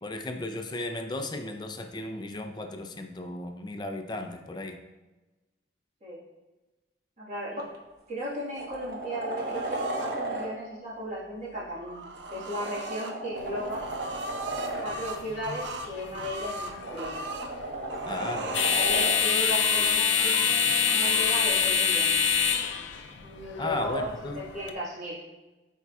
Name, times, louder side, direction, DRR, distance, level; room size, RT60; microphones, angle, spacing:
voice 1, 0.0-4.8 18.1-18.6 23.6-24.4, left 1 dB, 25° left, 5 dB, 0.4 m, -35 dB
voice 2, 7.2-7.8 8.1-13.9 14.8-17.2 18.2-22.4 23.2-25.2, equal, 40° right, -8 dB, 1.6 m, -36 dB
sound 1, 7.6-7.8 8.2-10.5 12.1-14.9 16.4-19.2 21.5-21.6, right 2 dB, 55° right, 1.1 m, -35 dB
sound 2, 9.4-10.2 11.6-13.1 13.6-17.5 17.9-18.7 19.1-20.6 20.9-21.5, right 2 dB, 70° right, 0.6 m, -39 dB
sound 3, 13.4-24.7, left 6 dB, 85° left, 0.5 m, -27 dB
12.0 x 4.6 x 2.4 m, 1.1 s
head